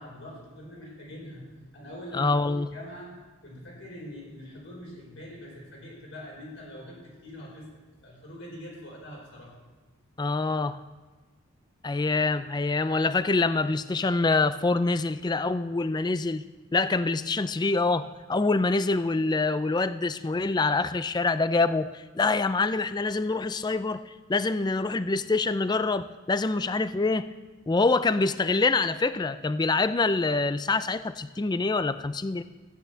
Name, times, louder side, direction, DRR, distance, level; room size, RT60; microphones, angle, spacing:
voice 1, 0.0-1.5 1.7-3.1 3.4-7.7 8.0-9.5, equal, 65° left, -2 dB, 4.6 m, -43 dB
voice 2, 2.1-2.7 10.2-10.8 11.8-16.4 16.7-27.3 27.7-32.4, left 3 dB, 20° left, 13 dB, 0.3 m, -25 dB
14.0 x 8.7 x 7.8 m, 1.3 s
head